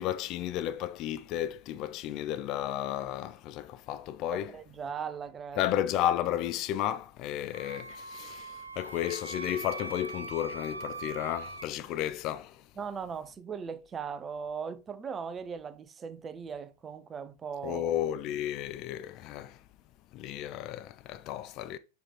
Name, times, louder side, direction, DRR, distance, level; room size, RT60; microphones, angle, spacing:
voice 1, 0.0-4.5 5.6-12.6 17.6-19.6 20.1-21.8, left 11 dB, 40° left, 0.4 m, -33 dB
voice 2, 4.3-5.7 12.8-17.8, right 6 dB, 20° right, 0.5 m, -39 dB
Wind instrument woodwind instrument, 7.5-11.7, right 3 dB, 85° right, 0.3 m, -41 dB
7.4 x 3.1 x 4.2 m
figure-of-eight pair, 90°, 0 cm